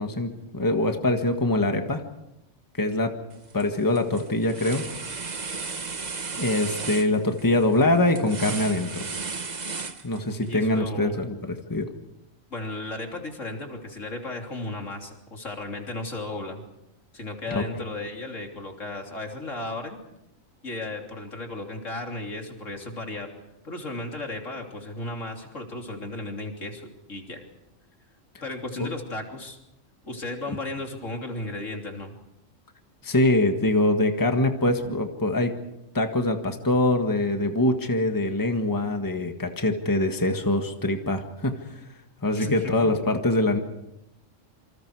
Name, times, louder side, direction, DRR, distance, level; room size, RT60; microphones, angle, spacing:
voice 1, 0.0-2.0 2.8-3.1 3.5-4.8 6.4-9.1 10.0-11.9 17.5-17.8 28.8-28.9 33.0-35.5 35.9-41.5 42.2-43.6, left 1 dB, 15° left, 5 dB, 1.6 m, -24 dB
sound 1, 3.3-3.6 3.9-10.5, right 4 dB, 35° right, 1.2 m, -35 dB
voice 2, 10.4-11.2 12.5-16.6 17.1-20.0 20.6-23.3 23.6-27.4 28.4-29.6 30.0-32.1 42.3-42.8, left 2 dB, 70° left, 2 dB, 3.7 m, -35 dB
27.5 x 26.0 x 4.8 m, 0.86 s
omnidirectional pair, 1.3 m